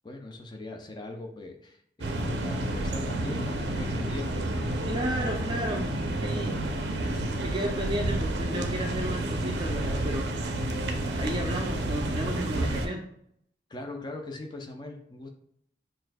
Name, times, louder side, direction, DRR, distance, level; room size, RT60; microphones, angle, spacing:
voice 1, 0.0-4.9 7.5-7.6 13.7-15.3, left 2 dB, 25° left, 3 dB, 0.5 m, -41 dB
sound 1, 2.0-12.9, right 1 dB, 80° right, 0.5 m, -30 dB
voice 2, 4.9-5.9 6.2-6.6 7.4-10.3 11.0-13.0, equal, 25° right, 2 dB, 0.5 m, -33 dB
6.1 x 2.6 x 2.2 m, 0.71 s
head